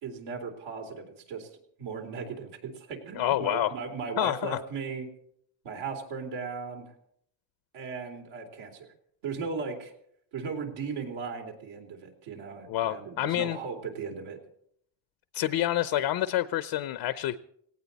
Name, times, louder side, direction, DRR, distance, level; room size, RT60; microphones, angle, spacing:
voice 1, 0.0-1.5 1.8-5.1 5.6-6.9 7.7-8.9 9.2-9.9 10.3-14.4, right 5 dB, 70° right, 3 dB, 3.7 m, -37 dB
voice 2, 3.1-3.8 4.2-4.6 12.7-13.6 15.3-17.4, left 12 dB, 55° left, 14 dB, 0.8 m, -28 dB
18.0 x 17.5 x 4.2 m, 0.69 s
supercardioid pair, 95°, 49 cm